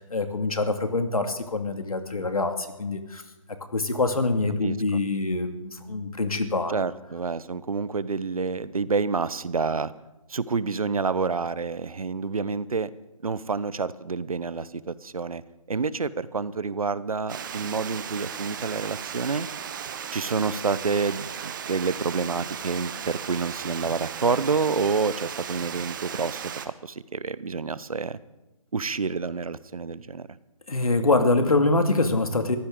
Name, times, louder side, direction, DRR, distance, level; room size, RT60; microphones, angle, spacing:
voice 1, 0.0-3.2 3.7-6.7 30.7-32.6, left 3 dB, 80° left, 7 dB, 2.2 m, -25 dB
voice 2, 4.6-5.0 6.7-9.9 10.3-12.9 13.2-15.4 15.7-19.5 20.1-28.2 28.7-30.3, right 4 dB, 80° right, 17 dB, 0.9 m, -28 dB
Water, 17.3-26.7, right 8 dB, 35° right, 1.1 m, -36 dB
22.0 x 15.0 x 3.8 m, 1.0 s
figure-of-eight pair, 150°, 18 cm